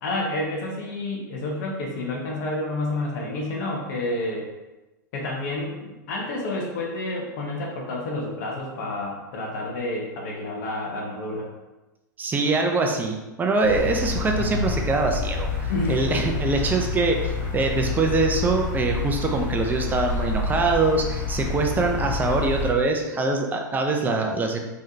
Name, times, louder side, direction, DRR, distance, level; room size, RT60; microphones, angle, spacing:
voice 1, 0.0-4.5 5.1-11.5 15.7-16.1, left 2 dB, 60° left, -1 dB, 0.9 m, -29 dB
voice 2, 12.2-24.6, right 3 dB, 15° right, 2 dB, 0.6 m, -23 dB
sound 1, 13.6-22.7, left 4 dB, 25° left, 1.2 m, -28 dB
3.7 x 3.2 x 2.7 m, 1.0 s
hypercardioid pair, 115°, 11 cm